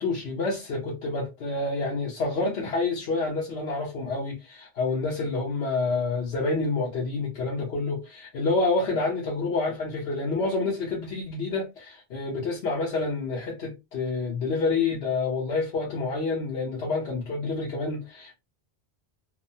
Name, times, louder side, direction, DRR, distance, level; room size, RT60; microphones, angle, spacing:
voice 1, 0.0-18.4, left 3 dB, 80° left, 1.0 m, -28 dB
3.0 x 2.0 x 2.6 m
omnidirectional pair, 1.1 m